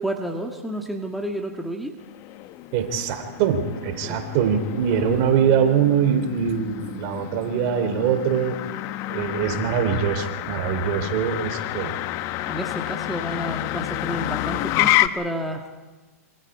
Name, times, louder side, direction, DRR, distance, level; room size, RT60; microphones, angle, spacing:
voice 1, 0.0-2.0 4.0-4.2 12.5-15.7, equal, ahead, 1 dB, 1.9 m, -30 dB
Motor vehicle (road), 2.0-15.1, left 16 dB, 40° left, 0.9 m, -29 dB
voice 2, 2.7-8.6 9.1-12.0, right 7 dB, 45° right, 7 dB, 3.2 m, -23 dB
26.5 x 25.0 x 4.9 m, 1.3 s
hypercardioid pair, 130°, 8 cm